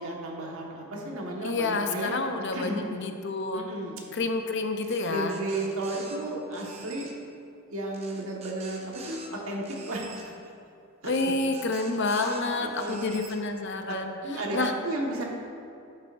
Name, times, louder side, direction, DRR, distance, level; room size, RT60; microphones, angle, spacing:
voice 1, 0.0-2.1 2.5-2.8 3.5-4.0 5.1-7.1 7.7-9.2 9.4-10.3 11.0-11.1 12.2-13.2 13.9-15.2, right 1 dB, 80° right, -1 dB, 1.5 m, -33 dB
voice 2, 1.4-3.7 4.1-5.4 11.0-14.2 14.5-14.7, left 3 dB, 55° left, 6 dB, 0.6 m, -29 dB
sound 1, 4.8-6.2 6.5-7.1 7.9-9.3 9.6-10.2 11.1-12.4 12.7-13.4, right 4 dB, 30° right, 0.9 m, -46 dB
10.5 x 8.7 x 2.6 m, 2.6 s
head